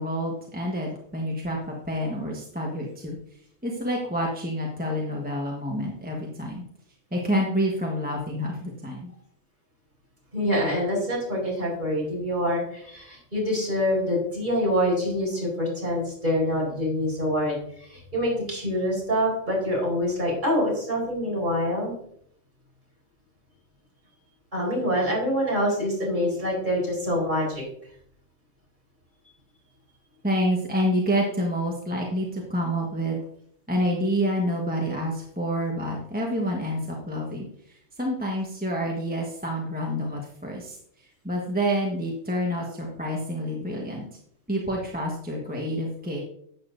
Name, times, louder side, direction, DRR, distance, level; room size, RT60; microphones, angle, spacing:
voice 1, 0.0-3.2 3.6-6.6 7.1-9.1 30.2-33.2 33.7-44.0 44.5-46.2, equal, 10° right, -2 dB, 1.2 m, -28 dB
voice 2, 10.3-21.9 24.5-27.6, equal, 40° right, -3 dB, 4.4 m, -26 dB
11.5 x 8.3 x 2.6 m, 0.67 s
omnidirectional pair, 1.3 m